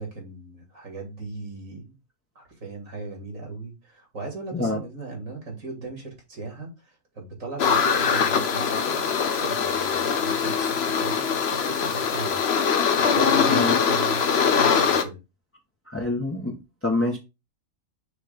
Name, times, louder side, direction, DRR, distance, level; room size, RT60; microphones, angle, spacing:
voice 1, 0.0-1.9 2.3-12.7 13.1-15.2, right 3 dB, 70° right, 2.9 m, -37 dB
sound 1, 7.6-15.0, left 6 dB, 55° left, 1.0 m, -22 dB
voice 2, 15.9-17.2, left 2 dB, 10° left, 1.0 m, -26 dB
6.4 x 3.3 x 5.0 m
omnidirectional pair, 1.4 m